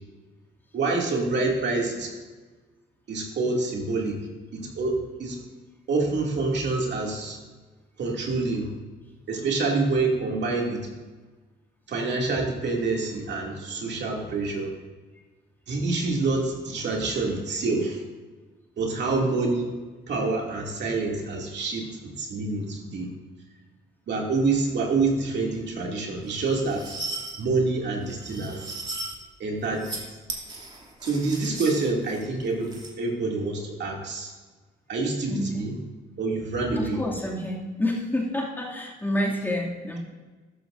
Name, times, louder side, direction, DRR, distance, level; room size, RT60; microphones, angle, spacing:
voice 1, 0.7-2.1 3.1-4.2 4.5-5.4 5.9-7.4 8.0-8.7 9.3-10.8 11.9-14.7 15.7-18.0 18.8-19.7 20.1-23.1 24.1-26.9 27.4-28.6 29.4-29.9 31.0-34.3 34.9-35.8 36.2-37.0, right 3 dB, 60° right, -1 dB, 2.6 m, -27 dB
sound 1, 26.3-27.3 28.1-29.2 29.6-30.0 30.3-32.9, right 2 dB, 20° right, 2.8 m, -37 dB
voice 2, 35.3-35.7 36.7-40.0, left 1 dB, 10° left, -3 dB, 2.5 m, -28 dB
13.5 x 11.5 x 2.6 m, 1.3 s
cardioid pair, 90°, 20 cm